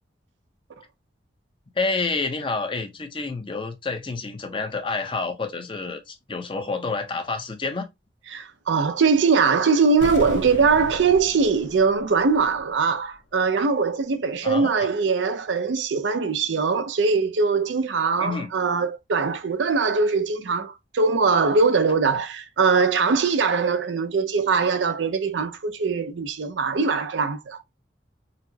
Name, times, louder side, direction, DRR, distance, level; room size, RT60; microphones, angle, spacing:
voice 1, 1.7-7.9 14.4-14.9 18.2-18.5, left 3 dB, 30° left, 0.6 m, -28 dB
voice 2, 8.3-27.6, right 4 dB, 85° right, 0.5 m, -22 dB
sound 1, 10.0-12.9 13.1-13.2, left 2 dB, 85° left, 0.7 m, -37 dB
4.1 x 2.0 x 2.7 m
head